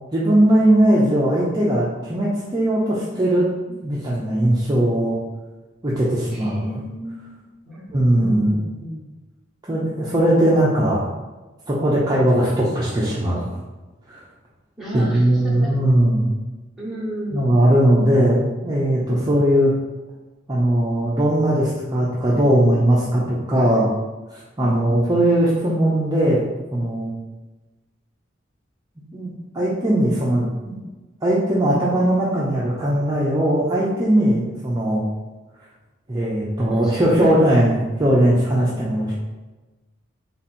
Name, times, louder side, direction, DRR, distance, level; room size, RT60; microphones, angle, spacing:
voice 1, 0.1-5.2 5.8-6.8 7.9-8.5 9.7-11.0 11.7-13.5 14.1-14.2 14.9-16.3 17.3-19.7 20.5-23.9 24.3-26.4 26.7-27.1 29.1-30.8 31.2-35.0 36.1-39.1, right 1 dB, 20° right, -7 dB, 0.6 m, -19 dB
voice 2, 6.3-7.9 8.2-9.1 14.8-15.8 16.8-17.7 36.6-38.1, equal, ahead, -8 dB, 1.2 m, -33 dB
3.6 x 2.9 x 4.2 m, 1.2 s
head